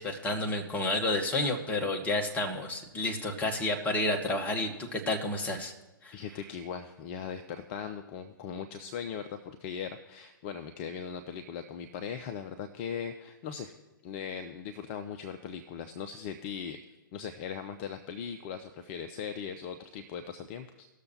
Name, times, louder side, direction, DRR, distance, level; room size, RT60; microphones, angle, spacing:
voice 1, 0.0-5.7 6.0-6.2, left 2 dB, 15° left, 1 dB, 1.1 m, -30 dB
voice 2, 6.1-13.7 14.0-16.8 17.1-20.9, left 7 dB, 35° left, 8 dB, 0.5 m, -39 dB
19.0 x 6.6 x 2.8 m, 1.1 s
figure-of-eight pair, 115°, 12 cm